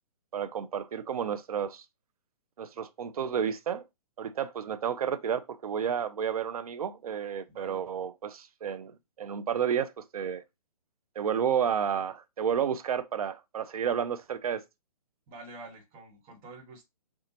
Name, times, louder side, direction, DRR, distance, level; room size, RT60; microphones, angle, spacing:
voice 1, 0.3-1.8 2.6-3.8 4.2-10.4 11.2-14.6, right 8 dB, 70° right, 0.6 m, -31 dB
voice 2, 7.5-7.8 15.3-16.8, right 3 dB, 25° right, 1.4 m, -47 dB
6.8 x 2.4 x 2.9 m
hypercardioid pair, 145°, 20 cm